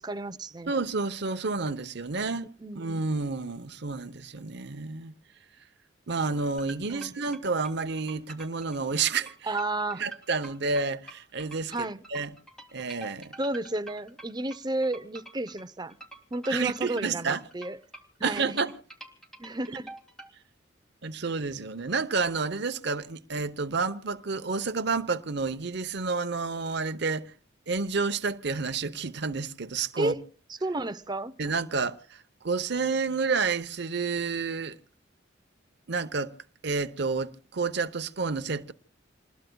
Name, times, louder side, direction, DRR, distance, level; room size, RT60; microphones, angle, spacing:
voice 1, 0.0-0.7 2.3-2.9 6.9-7.1 9.5-10.0 11.7-12.0 13.4-16.0 16.3-17.8 18.2-18.6 19.4-19.9 30.0-30.2 30.6-31.3, right 2 dB, 20° right, 0.7 m, -32 dB
voice 2, 0.7-2.4 2.7-5.1 6.1-9.5 10.0-12.3 12.7-13.3 16.5-17.4 18.2-18.7 21.0-27.3 27.7-30.1 31.4-34.8 35.9-36.3 36.6-38.7, right 4 dB, 60° right, 0.9 m, -30 dB
sound 1, 6.6-20.3, right 2 dB, 5° left, 2.2 m, -47 dB
28.0 x 20.0 x 2.3 m
head